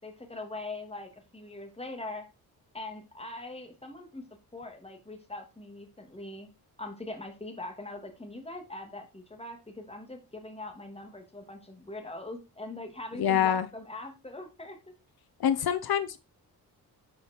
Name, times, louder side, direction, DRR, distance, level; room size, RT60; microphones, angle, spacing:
voice 1, 0.0-2.3 2.7-4.2 4.5-6.5 6.8-14.8, left 2 dB, 15° left, 4 dB, 3.0 m, -42 dB
voice 2, 13.2-13.7 15.4-16.2, left 9 dB, 80° left, 12 dB, 0.9 m, -25 dB
11.5 x 5.7 x 4.7 m, 0.28 s
wide cardioid pair, 115°, 36 cm